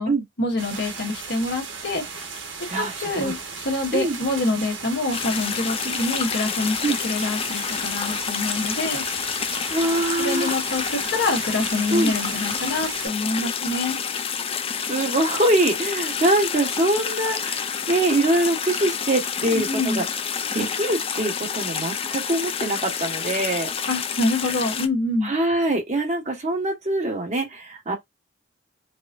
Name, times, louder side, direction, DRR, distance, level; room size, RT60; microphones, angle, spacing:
voice 1, 0.4-2.0 2.8-3.4 3.6-9.0 10.2-14.0 19.4-20.0 23.9-25.3, left 2 dB, 65° left, 1.5 m, -26 dB
sound 1, 0.6-13.1, right 5 dB, 75° right, 1.4 m, -36 dB
voice 2, 2.7-3.3 3.9-4.2 5.8-6.0 6.8-7.0 9.7-10.6 11.9-12.1 14.8-20.0 20.5-23.7 25.2-28.0, right 1 dB, 40° right, 1.3 m, -24 dB
sound 2, 5.1-24.9, left 7 dB, 30° left, 0.4 m, -29 dB
4.8 x 2.2 x 2.5 m
head